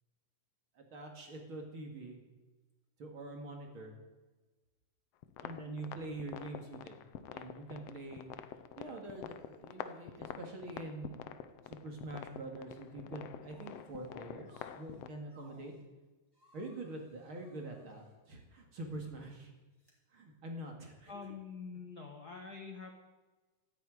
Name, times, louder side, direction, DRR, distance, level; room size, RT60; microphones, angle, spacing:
voice 1, 0.7-2.2 3.0-4.0 5.4-6.9 7.2-8.3 8.8-11.3 11.6-15.7 16.5-19.5 20.1-21.1, right 2 dB, 45° right, 2 dB, 2.6 m, -45 dB
sound 1, 5.2-15.1, left 10 dB, 85° left, 1.4 m, -47 dB
sound 2, 13.5-14.1 14.4-15.8 16.3-18.2 18.8-19.0 19.8-19.9, right 1 dB, 5° right, 3.9 m, -66 dB
voice 2, 21.1-22.9, left 5 dB, 55° left, 3 dB, 1.1 m, -46 dB
13.5 x 9.2 x 9.2 m, 1.2 s
omnidirectional pair, 3.8 m